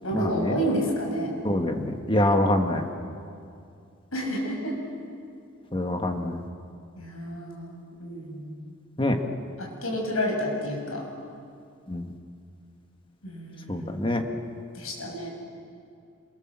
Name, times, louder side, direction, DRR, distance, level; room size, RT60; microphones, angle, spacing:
voice 1, 0.0-1.4 4.1-4.8 7.0-8.5 9.6-11.0 13.2-13.9 14.7-15.3, equal, 90° left, 0 dB, 7.3 m, -30 dB
voice 2, 1.4-2.8 5.7-6.4 9.0-9.2 11.9-12.1 13.7-14.2, left 1 dB, 25° left, 4 dB, 1.6 m, -25 dB
27.0 x 25.0 x 7.6 m, 2.4 s
head